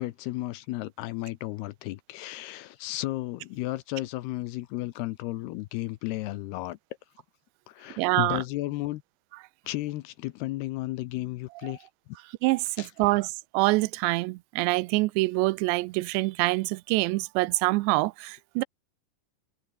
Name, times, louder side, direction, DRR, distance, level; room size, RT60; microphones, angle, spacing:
voice 1, 0.0-6.8 7.7-9.0 9.7-11.9 12.8-13.1, left 17 dB, 80° left, 2.6 m, -34 dB
voice 2, 8.0-8.4 12.4-18.6, right 22 dB, 85° right, 2.8 m, -25 dB
omnidirectional pair, 5.1 m